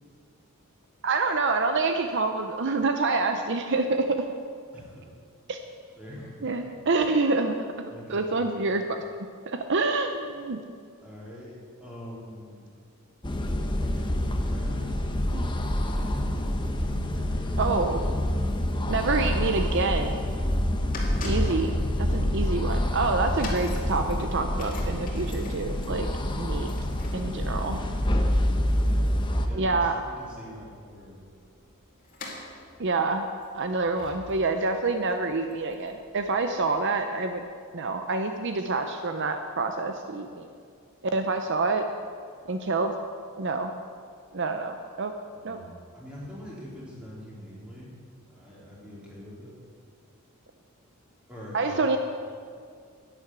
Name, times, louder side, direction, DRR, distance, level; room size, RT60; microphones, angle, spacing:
voice 1, 1.0-4.2 5.5-5.6 6.4-9.0 9.5-10.6 15.3-15.5 16.0-16.1 17.6-18.0 18.9-20.2 21.2-26.1 26.3-26.7 27.1-27.8 29.5-29.9 32.8-33.3 33.5-37.4 37.7-40.5 41.1-41.8 42.5-42.9 43.4-43.7 44.3-45.1 45.4-45.6 51.5-52.0, right 3 dB, 55° right, 6 dB, 0.7 m, -27 dB
voice 2, 4.7-5.1 6.0-6.7 7.9-8.4 11.0-11.5 11.8-12.6 13.8-14.9 15.3-17.7 27.4-29.1 29.4-31.2 45.3-47.9 48.3-49.5 51.3-51.8, equal, 5° right, -7 dB, 4.0 m, -44 dB
sound 1, 13.2-29.5, left 1 dB, 20° left, 0.9 m, -27 dB
sound 2, 20.6-36.8 37.5-37.6, left 1 dB, 40° left, 2.4 m, -42 dB
11.0 x 9.9 x 8.0 m, 2.2 s
head